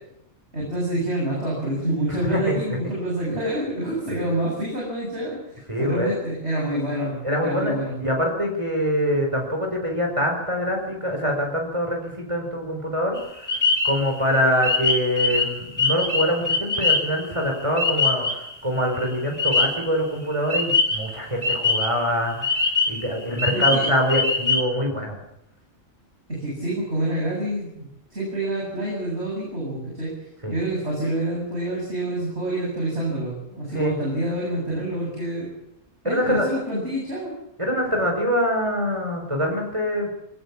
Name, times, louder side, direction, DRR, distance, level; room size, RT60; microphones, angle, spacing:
voice 1, 0.5-7.9 23.5-23.9 26.3-30.1 30.5-35.5 36.0-37.3, right 1 dB, 50° right, -3 dB, 8.2 m, -27 dB
voice 2, 2.1-2.6 4.1-4.3 5.7-6.1 7.2-13.6 13.8-25.2 30.4-30.6 33.7-33.9 36.0-36.5 37.6-40.1, equal, 25° right, 1 dB, 5.0 m, -24 dB
sound 1, 13.2-18.5 18.8-19.9 20.5-22.1 22.4-24.6, left 3 dB, 15° left, 3.9 m, -23 dB
23.5 x 19.0 x 7.4 m, 0.80 s
omnidirectional pair, 1.4 m